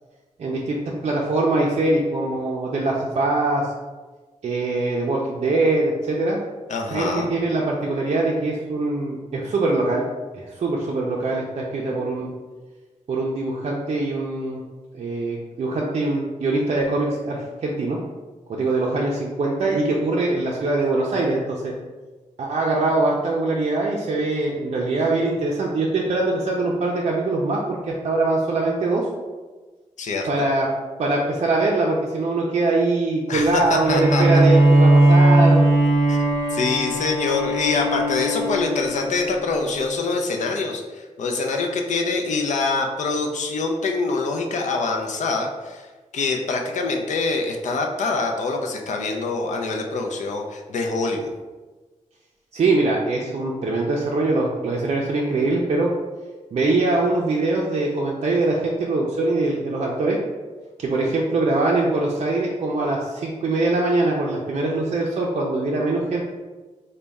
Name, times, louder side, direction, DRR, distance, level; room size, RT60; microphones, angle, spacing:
voice 1, 0.4-3.7 4.4-6.4 6.9-10.0 10.3-12.3 13.1-14.6 15.0-18.0 18.5-21.7 22.4-29.1 30.3-30.7 31.0-35.6 52.5-55.9 56.5-60.2 60.8-66.2, right 2 dB, 55° right, -3 dB, 0.4 m, -22 dB
voice 2, 6.7-7.3 30.0-30.3 33.3-34.5 36.1-45.9 46.1-51.3, left 3 dB, 70° left, 2 dB, 0.5 m, -25 dB
Bowed string instrument, 33.8-39.3, right 1 dB, ahead, 1.0 m, -18 dB
4.0 x 2.2 x 3.4 m, 1.3 s
wide cardioid pair, 175°, 13 cm